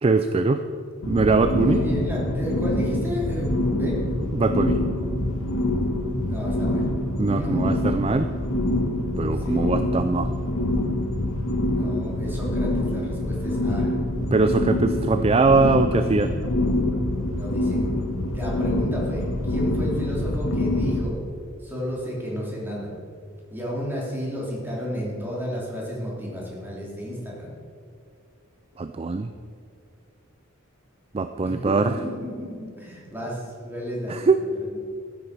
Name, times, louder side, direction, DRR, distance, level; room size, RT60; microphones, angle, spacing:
voice 1, 0.0-0.6 1.1-1.8 4.3-4.8 7.2-8.3 9.2-10.3 14.3-16.3 28.8-29.3 31.1-31.9 34.1-34.4, right 3 dB, 30° right, 9 dB, 0.4 m, -21 dB
sound 1, 1.0-21.0, left 1 dB, 75° left, 1.3 m, -25 dB
voice 2, 1.5-4.0 6.2-6.8 7.3-7.7 9.4-9.8 11.7-13.9 17.4-17.8 18.3-21.2 21.6-22.9 23.5-27.5 31.4-34.8, equal, 10° right, -4 dB, 3.3 m, -32 dB
14.0 x 8.6 x 6.0 m, 2.3 s
head